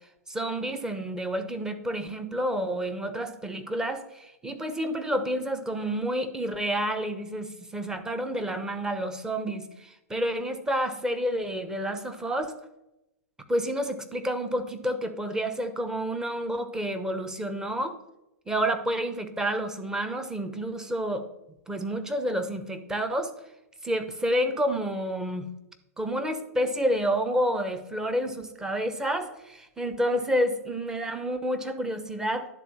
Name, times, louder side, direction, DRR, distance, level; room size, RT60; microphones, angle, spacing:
voice 1, 0.3-12.6 13.5-18.0 18.5-21.3 21.7-23.3 23.8-25.5 26.0-32.5, equal, 5° right, 8 dB, 0.9 m, -29 dB
11.0 x 4.0 x 7.1 m, 0.90 s
hypercardioid pair, 115°, 9 cm